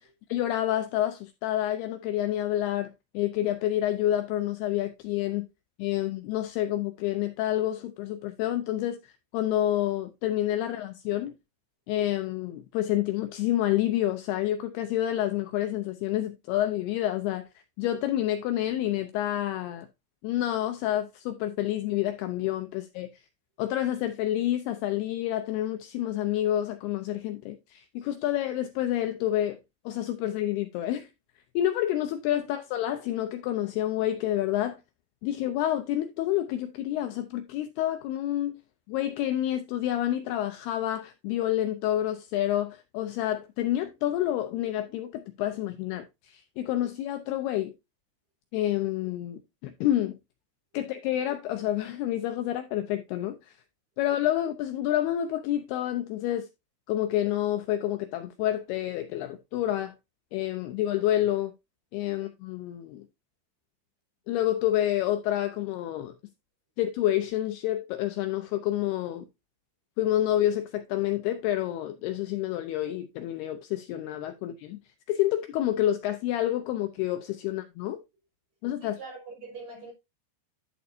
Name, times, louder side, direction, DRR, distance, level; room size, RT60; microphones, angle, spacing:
voice 1, 0.0-5.5 5.8-11.3 11.9-19.9 20.2-23.2 23.6-29.6 29.9-31.1 31.6-34.8 35.2-38.5 38.9-47.7 48.5-50.2 50.7-53.6 54.0-56.5 56.9-59.9 60.3-61.5 61.9-63.1 64.3-66.1 66.8-69.3 70.0-74.8 75.1-78.0 78.6-79.0, left 13 dB, 85° left, 2.3 m, -28 dB
voice 2, 78.8-79.9, right 3 dB, 40° right, 5.4 m, -43 dB
11.0 x 6.8 x 2.7 m
omnidirectional pair, 5.1 m